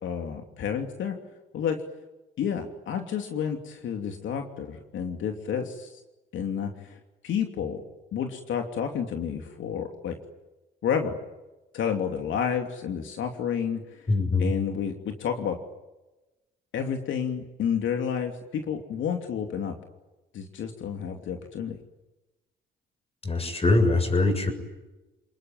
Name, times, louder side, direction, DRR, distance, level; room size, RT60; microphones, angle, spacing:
voice 1, 0.0-1.2 1.5-1.8 2.4-6.0 6.3-7.8 8.1-10.2 10.8-11.2 11.7-14.1 14.4-15.6 16.7-19.7 20.3-21.8, left 7 dB, 75° left, 4 dB, 2.9 m, -30 dB
voice 2, 14.1-14.5 23.2-24.5, left 3 dB, 30° left, 8 dB, 7.2 m, -22 dB
29.5 x 20.5 x 9.2 m, 1.1 s
cardioid pair, 90°, 20 cm